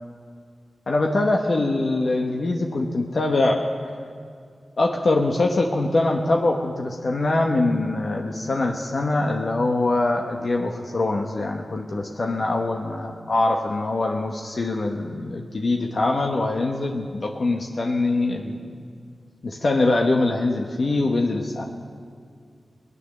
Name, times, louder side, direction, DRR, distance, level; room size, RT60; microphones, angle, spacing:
voice 1, 0.9-3.6 4.8-18.7 19.4-21.6, left 2 dB, 65° left, 1 dB, 1.1 m, -23 dB
19.5 x 9.6 x 6.6 m, 2.1 s
cardioid pair, 50°, 0 cm